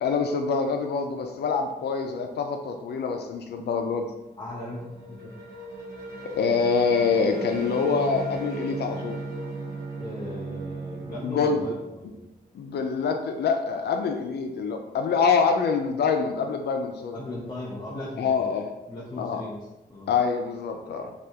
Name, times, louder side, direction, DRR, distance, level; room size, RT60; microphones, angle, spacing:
voice 1, 0.0-4.1 6.2-9.2 11.2-11.7 12.5-17.2 18.2-18.7 19.2-19.4 20.1-21.1, left 5 dB, 85° left, 5 dB, 0.4 m, -25 dB
sound 1, 4.2-11.8, equal, 85° right, 0.9 m, -39 dB
voice 2, 4.4-5.4 10.0-12.2 17.1-18.5 18.9-20.1, left 1 dB, 25° left, -4 dB, 0.4 m, -37 dB
Bowed string instrument, 7.8-12.0, right 4 dB, 30° right, 0.5 m, -37 dB
3.4 x 2.4 x 2.8 m, 0.97 s
wide cardioid pair, 160°, 17 cm